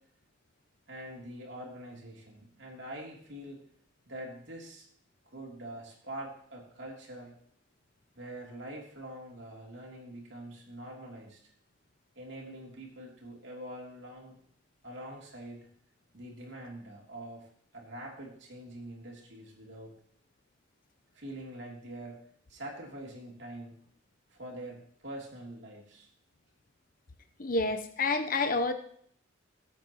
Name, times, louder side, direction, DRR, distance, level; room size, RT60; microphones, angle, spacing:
voice 1, 0.9-3.6 4.0-4.8 5.2-7.3 8.1-11.5 12.1-14.4 14.8-15.7 16.1-17.5 17.7-19.9 21.1-22.2 22.5-23.8 24.3-26.1, right 1 dB, 60° right, -2 dB, 3.2 m, -44 dB
voice 2, 27.4-28.7, left 3 dB, 45° left, 7 dB, 0.8 m, -28 dB
19.5 x 8.6 x 3.0 m, 0.62 s
head